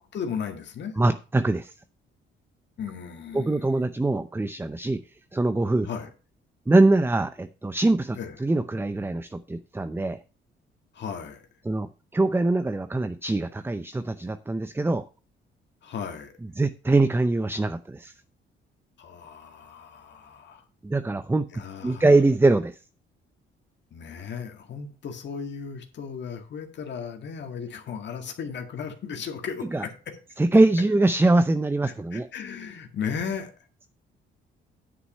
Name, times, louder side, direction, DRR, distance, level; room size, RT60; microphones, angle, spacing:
voice 1, 0.1-0.9 2.8-3.6 5.8-6.1 8.2-8.4 10.9-11.4 15.8-16.3 19.0-20.7 21.5-22.2 23.9-30.2 31.8-33.5, left 6 dB, 65° left, 1.9 m, -35 dB
voice 2, 1.0-1.7 3.3-5.9 6.7-10.2 11.6-15.0 16.6-18.1 20.8-21.5 21.8-22.8 29.7-29.8 30.4-32.3, right 2 dB, 10° right, 0.6 m, -23 dB
9.8 x 6.1 x 5.5 m
cardioid pair, 90°, 20 cm